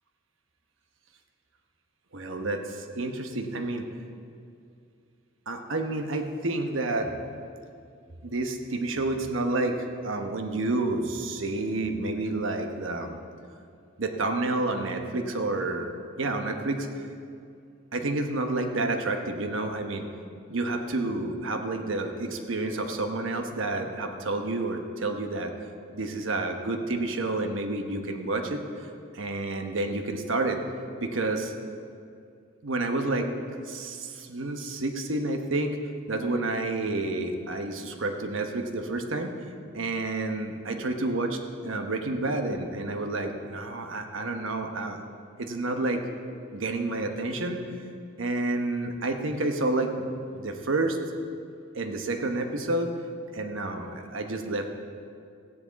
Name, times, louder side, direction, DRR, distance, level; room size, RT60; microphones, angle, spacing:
voice 1, 2.1-3.8 5.5-7.1 8.2-9.8 10.0-13.2 14.0-15.9 16.2-17.0 17.9-20.1 20.5-25.5 25.9-28.6 29.1-30.6 31.0-31.5 32.6-33.3 33.7-35.8 36.1-39.3 39.7-45.0 45.4-46.0 46.5-47.6 48.2-51.0 51.7-52.9 53.3-54.7, right 2 dB, 80° right, 5 dB, 1.0 m, -29 dB
15.0 x 9.9 x 4.0 m, 2.4 s
head